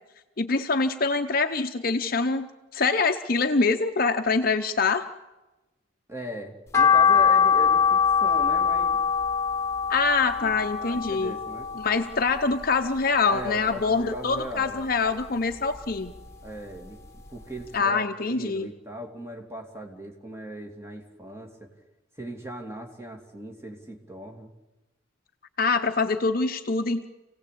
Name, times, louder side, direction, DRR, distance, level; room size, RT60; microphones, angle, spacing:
voice 1, 0.4-2.5 2.7-5.1 9.9-11.3 11.8-16.1 17.7-18.7 25.6-27.0, left 4 dB, 45° left, 7 dB, 0.8 m, -24 dB
voice 2, 6.1-9.0 10.4-10.5 10.8-11.7 13.3-14.9 16.4-21.7 22.2-24.5, right 1 dB, 15° right, 2 dB, 2.8 m, -38 dB
sound 1, 6.7-13.0 13.4-14.6 14.9-16.3 16.7-16.8 17.3-17.4 17.6-17.7, left 7 dB, 15° left, 1.9 m, -23 dB
27.5 x 17.5 x 8.6 m, 1.1 s
head